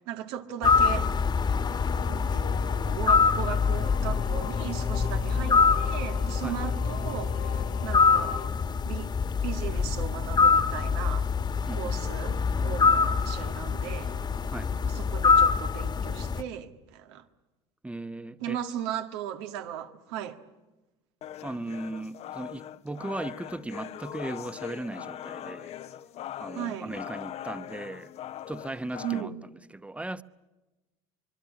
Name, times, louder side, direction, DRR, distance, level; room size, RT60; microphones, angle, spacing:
voice 1, 0.1-1.1 2.1-8.4 8.8-9.1 9.4-11.3 11.7-14.1 14.8-17.3 18.4-20.4 26.5-26.9 29.0-29.4, right 10 dB, 75° right, 1.8 m, -37 dB
sound 1, 0.6-16.4, left 5 dB, 35° left, 1.5 m, -25 dB
sound 2, 1.4-8.5, left 10 dB, 70° left, 2.2 m, -42 dB
voice 2, 6.4-6.8 11.7-12.0 14.5-14.8 17.8-18.6 21.4-25.7 26.4-28.1 28.5-29.3 29.7-30.2, right 2 dB, 10° right, 1.0 m, -37 dB
sound 3, 21.2-29.2, left 11 dB, 50° left, 0.8 m, -41 dB
25.0 x 22.5 x 8.8 m
hypercardioid pair, 80°, 14 cm